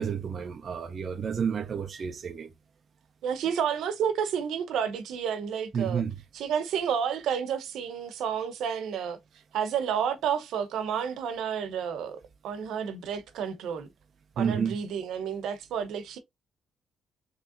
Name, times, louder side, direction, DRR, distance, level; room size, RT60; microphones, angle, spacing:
voice 1, 0.0-2.5 5.7-6.1 14.4-14.8, right 7 dB, 45° right, 0.4 m, -30 dB
voice 2, 3.2-6.0 6.3-9.2 9.5-13.9 14.4-16.2, right 7 dB, 80° right, 0.7 m, -30 dB
3.6 x 3.1 x 2.5 m
cardioid pair, 90°, 0 cm